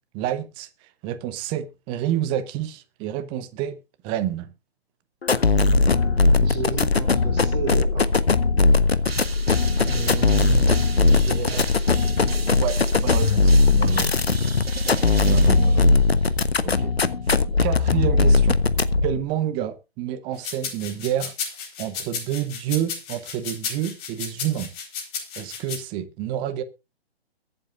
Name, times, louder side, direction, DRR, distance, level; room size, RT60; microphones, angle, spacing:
voice 1, 0.1-0.7 1.0-3.8 4.0-4.5 12.6-14.1 15.2-15.9 16.6-16.9 17.6-18.6 19.0-21.3 21.8-24.7 25.4-26.6, right 11 dB, 15° right, 0.8 m, -28 dB
sound 1, 5.2-19.2, left 3 dB, 75° left, 1.1 m, -19 dB
voice 2, 6.3-8.1 9.8-11.7, right 7 dB, 40° right, 3.9 m, -33 dB
sound 2, 9.1-16.3, right 4 dB, 70° right, 2.0 m, -37 dB
sound 3, 20.4-25.8, left 6 dB, 25° left, 4.3 m, -33 dB
22.5 x 7.9 x 2.5 m
figure-of-eight pair, 130°, 31 cm